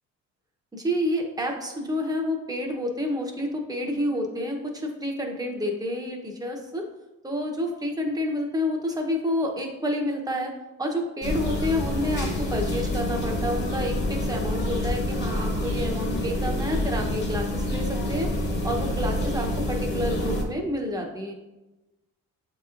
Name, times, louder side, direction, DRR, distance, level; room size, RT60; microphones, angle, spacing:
voice 1, 0.7-6.9 7.2-10.5 10.8-18.3 18.6-21.3, left 1 dB, 10° right, 1 dB, 0.8 m, -29 dB
sound 1, 11.2-20.4, left 1 dB, 35° left, 1.1 m, -27 dB
7.0 x 3.0 x 2.5 m, 1.0 s
cardioid pair, 90°, 30 cm